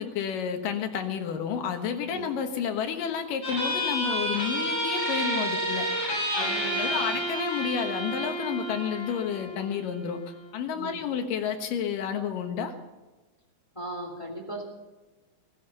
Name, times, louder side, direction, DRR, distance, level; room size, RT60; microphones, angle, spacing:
voice 1, 0.0-5.9 6.4-10.2 10.5-12.7, left 7 dB, 70° left, 5 dB, 2.8 m, -30 dB
sound 1, 3.4-10.4, equal, 45° left, 7.5 m, -30 dB
voice 2, 6.4-7.2 10.7-11.0 13.7-14.6, right 1 dB, 10° left, 0 dB, 2.7 m, -38 dB
16.0 x 15.0 x 5.5 m, 1.2 s
omnidirectional pair, 4.3 m